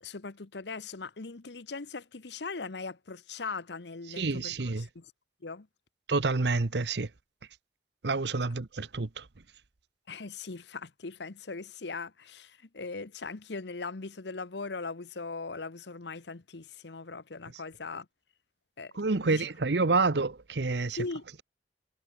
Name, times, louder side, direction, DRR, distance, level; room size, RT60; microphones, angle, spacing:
voice 1, 0.0-5.1 5.4-5.7 10.1-18.1 18.8-18.9 19.2-19.4 21.0-21.2, left 4 dB, 80° left, 1.0 m, -40 dB
voice 2, 4.2-4.9 6.1-7.1 8.0-9.2 18.9-21.0, right 3 dB, 75° right, 0.9 m, -28 dB
head